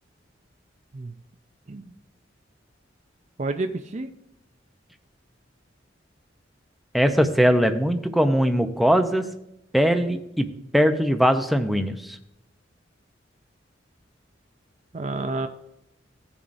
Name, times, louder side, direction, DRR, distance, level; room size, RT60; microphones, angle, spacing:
voice 1, 3.4-4.1 14.9-15.5, right 2 dB, 40° right, 7 dB, 0.5 m, -29 dB
voice 2, 6.9-9.2 9.7-10.5 10.7-12.2, equal, ahead, 6 dB, 0.7 m, -20 dB
17.0 x 7.0 x 2.6 m, 0.85 s
head